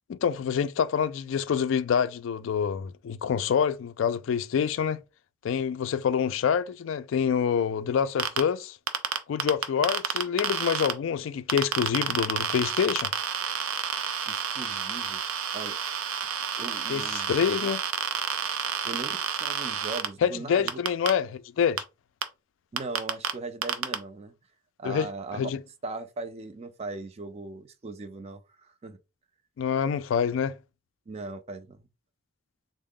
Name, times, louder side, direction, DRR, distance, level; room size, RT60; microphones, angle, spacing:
voice 1, 0.1-5.0 5.4-8.8 9.3-13.1 16.9-17.8 20.2-21.8 24.8-25.6 29.6-30.6, left 7 dB, 70° left, 0.3 m, -26 dB
sound 1, 8.2-8.4 8.9-10.9 11.5-20.1 20.7-21.1 21.8-21.9 22.2-22.3 22.8-23.3 23.6-23.9, right 8 dB, 90° right, 0.5 m, -29 dB
voice 2, 14.3-15.2 15.5-15.8 16.6-17.3 18.8-20.8 22.7-24.3 24.8-25.5 25.8-29.0 31.1-31.8, right 3 dB, 30° right, 0.4 m, -39 dB
3.6 x 2.0 x 3.7 m
head